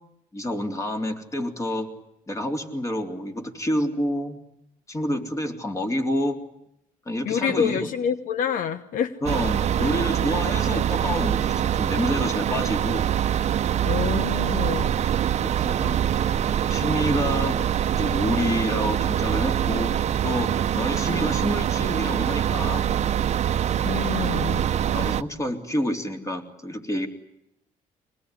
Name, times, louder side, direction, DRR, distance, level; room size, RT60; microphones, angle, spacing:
voice 1, 0.3-1.9 2.3-4.4 4.9-6.4 7.0-7.9 9.2-13.0 15.4-16.0 16.7-17.6 17.9-19.9 20.2-22.9 24.6-27.1, left 1 dB, 20° left, 5 dB, 3.4 m, -28 dB
voice 2, 7.2-9.2 13.8-14.9 23.8-24.7, left 8 dB, 70° left, 12 dB, 1.2 m, -27 dB
sound 1, 9.3-25.2, right 10 dB, 50° right, 0.9 m, -24 dB
25.5 x 19.5 x 9.9 m, 0.82 s
cardioid pair, 125°, 14 cm